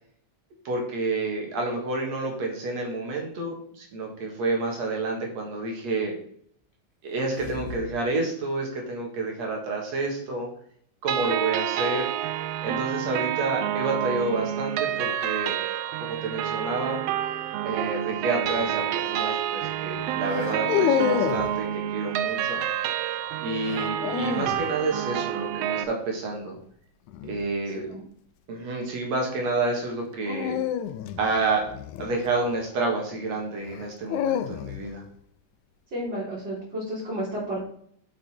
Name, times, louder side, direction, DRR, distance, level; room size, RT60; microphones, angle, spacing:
voice 1, 0.6-6.1 7.0-10.5 11.0-12.1 12.6-15.5 16.1-17.0 17.6-22.6 23.4-26.6 27.2-27.9 28.5-30.6 31.2-31.7 32.0-35.0, right 3 dB, 60° right, 0 dB, 2.9 m, -29 dB
sound 1, 7.1-8.0 8.4-8.5, left 5 dB, 20° left, 1.8 m, -39 dB
sound 2, 11.1-25.8, right 10 dB, 90° right, 1.4 m, -29 dB
sound 3, 18.4-18.8 20.3-21.6 23.6-24.6 27.1-27.5 30.2-32.6 33.7-35.0, left 10 dB, 80° left, 1.9 m, -28 dB
voice 2, 35.9-37.7, equal, 35° right, -10 dB, 4.2 m, -31 dB
8.1 x 6.6 x 4.4 m, 0.63 s
omnidirectional pair, 3.6 m